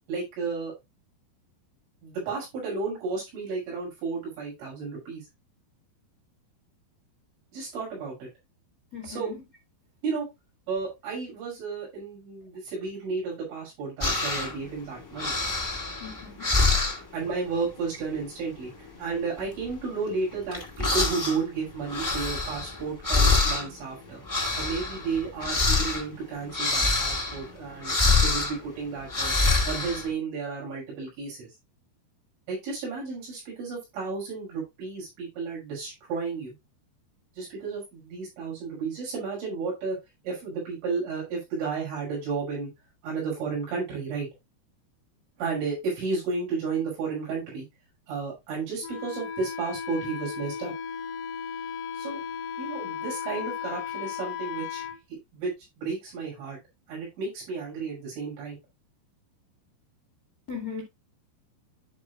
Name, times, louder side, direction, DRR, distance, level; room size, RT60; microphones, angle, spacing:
voice 1, 0.1-0.7 2.0-5.3 7.5-8.3 9.0-9.3 10.0-10.3 10.7-15.4 17.1-24.2 24.6-28.0 28.2-29.3 29.6-31.5 32.5-36.5 37.3-40.0 40.2-42.7 43.0-44.3 45.4-47.7 48.1-50.7 51.9-52.2 52.6-55.5 55.8-56.6 56.9-58.6, right 4 dB, 85° right, 8.4 m, -32 dB
voice 2, 8.9-9.4 16.0-16.5 60.5-60.8, left 6 dB, 35° left, 1.5 m, -38 dB
sound 1, 14.0-14.7 15.0-17.2 17.5-17.9 18.1-18.5 18.9-21.4 21.7-30.1, left 3 dB, 15° left, 0.7 m, -26 dB
Wind instrument woodwind instrument, 48.8-55.0, left 8 dB, 80° left, 2.6 m, -35 dB
13.0 x 4.9 x 2.4 m
omnidirectional pair, 5.3 m